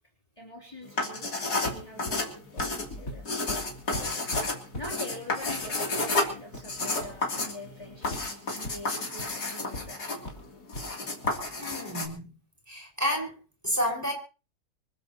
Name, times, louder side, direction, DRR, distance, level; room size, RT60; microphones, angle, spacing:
voice 1, 0.4-3.2 4.0-4.1 4.7-10.2 13.7-13.8, left 1 dB, 20° left, -2 dB, 3.4 m, -44 dB
sound 1, 0.9-12.1, left 3 dB, 80° left, 3.6 m, -31 dB
sound 2, 1.6-8.2 8.6-8.7 9.1-9.3 9.7-9.8 10.3-10.9 11.2-11.5, left 1 dB, 55° left, 4.2 m, -41 dB
voice 2, 11.6-12.3 12.7-14.1, equal, 10° right, 0 dB, 5.4 m, -30 dB
25.5 x 15.0 x 3.0 m, 0.35 s
omnidirectional pair, 1.7 m